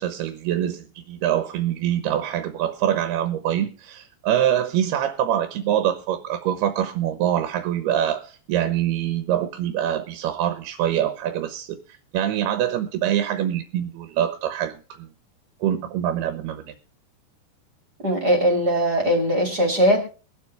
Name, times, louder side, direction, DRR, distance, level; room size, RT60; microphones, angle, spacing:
voice 1, 0.0-11.8 12.1-15.1 15.6-16.7, right 10 dB, 90° right, 3.1 m, -24 dB
voice 2, 18.0-20.0, equal, 25° right, 2.9 m, -20 dB
23.0 x 8.2 x 3.4 m
omnidirectional pair, 4.5 m